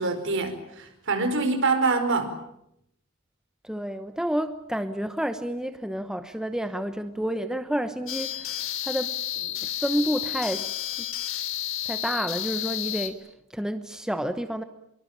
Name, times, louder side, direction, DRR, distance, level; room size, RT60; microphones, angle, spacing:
voice 1, 0.0-2.3, right 3 dB, 60° right, 7 dB, 4.9 m, -25 dB
voice 2, 3.6-10.6 11.0-11.1 11.9-13.2 13.5-14.6, equal, 5° right, 9 dB, 0.9 m, -30 dB
sound 1, 8.1-13.1, left 12 dB, 65° left, 3.1 m, -31 dB
25.0 x 23.0 x 8.8 m, 0.77 s
head